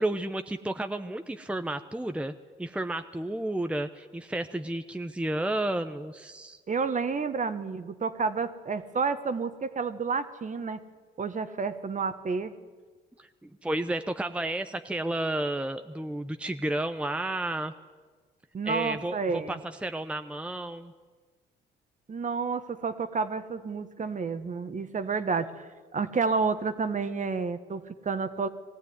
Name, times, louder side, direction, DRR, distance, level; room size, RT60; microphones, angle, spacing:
voice 1, 0.0-2.3 2.6-6.6 13.2-17.7 18.6-20.9, right 1 dB, 5° right, 8 dB, 0.9 m, -32 dB
voice 2, 6.7-10.8 11.2-12.5 18.5-19.6 22.1-28.5, right 5 dB, 40° right, 10 dB, 1.5 m, -30 dB
20.5 x 15.0 x 9.6 m, 1.5 s
supercardioid pair, 65°, 20 cm